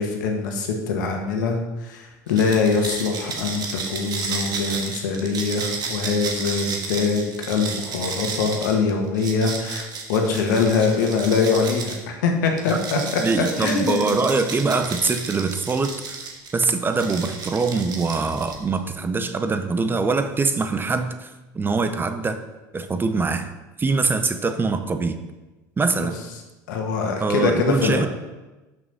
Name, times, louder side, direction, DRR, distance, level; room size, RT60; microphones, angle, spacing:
voice 1, 0.0-13.2 13.6-14.2 26.0-26.1 26.7-28.0, left 4 dB, 80° left, 2 dB, 1.5 m, -23 dB
sound 1, 2.3-12.0 12.6-16.5 16.9-18.8, right 4 dB, 40° right, 1.6 m, -32 dB
voice 2, 13.2-16.2 16.5-21.3 21.5-22.4 22.7-23.5 23.8-25.2 25.8-26.2 27.2-28.1, right 4 dB, 20° right, 9 dB, 0.7 m, -23 dB
6.3 x 6.0 x 5.4 m, 1.1 s
hypercardioid pair, 85°, 10 cm